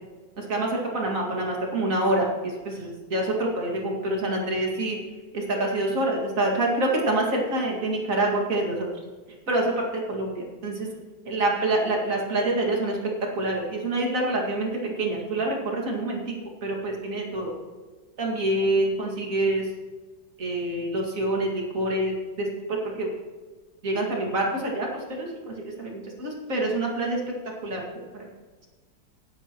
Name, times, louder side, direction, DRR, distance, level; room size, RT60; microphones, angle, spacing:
voice 1, 0.4-5.0 5.3-8.9 9.5-10.9 11.3-13.0 13.3-14.7 15.0-16.3 16.6-17.5 18.2-19.6 20.4-23.1 23.8-27.3 27.6-28.3, right 1 dB, 45° right, -1 dB, 2.5 m, -26 dB
16.0 x 11.5 x 3.0 m, 1.4 s
omnidirectional pair, 2.0 m